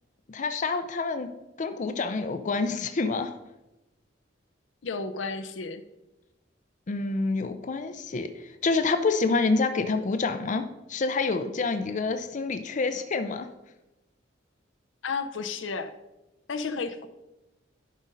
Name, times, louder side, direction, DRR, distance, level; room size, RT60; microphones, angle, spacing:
voice 1, 0.3-1.3 1.6-3.3 6.9-13.5, left 3 dB, 40° left, 9 dB, 0.5 m, -27 dB
voice 2, 4.8-5.8 15.0-15.9 16.5-17.1, left 4 dB, 85° left, 9 dB, 0.6 m, -32 dB
11.5 x 5.2 x 3.9 m, 0.98 s
head